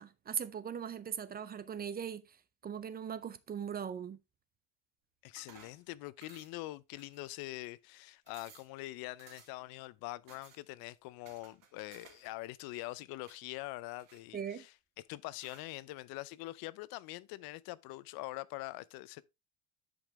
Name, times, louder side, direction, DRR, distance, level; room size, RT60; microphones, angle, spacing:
voice 1, 0.0-2.3 2.6-4.2 14.3-14.6, right 8 dB, 25° right, 0.5 m, -39 dB
voice 2, 5.2-19.2, left 18 dB, 70° left, 0.6 m, -44 dB
sound 1, 5.4-5.8 6.2-6.7 7.0-7.6 7.9-8.0 8.3-8.7 9.2-9.7 10.3-10.6 11.3-12.3 12.6-13.4 14.0-14.7 15.4-15.7, right 7 dB, 55° right, 2.7 m, -59 dB
10.5 x 5.4 x 3.4 m
cardioid pair, 145°, 38 cm